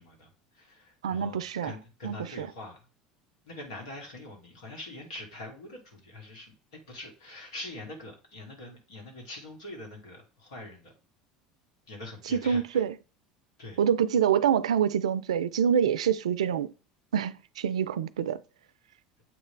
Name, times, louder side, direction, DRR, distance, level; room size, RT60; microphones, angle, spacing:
voice 1, 0.0-2.8 3.4-10.9 11.9-12.8 13.6-13.8, left 2 dB, 85° left, 2.5 m, -44 dB
voice 2, 1.0-1.7 2.0-2.5 12.3-13.0 13.8-16.7 17.1-18.4, right 8 dB, 90° right, 0.4 m, -26 dB
7.5 x 3.4 x 4.4 m
hypercardioid pair, 80°, 3 cm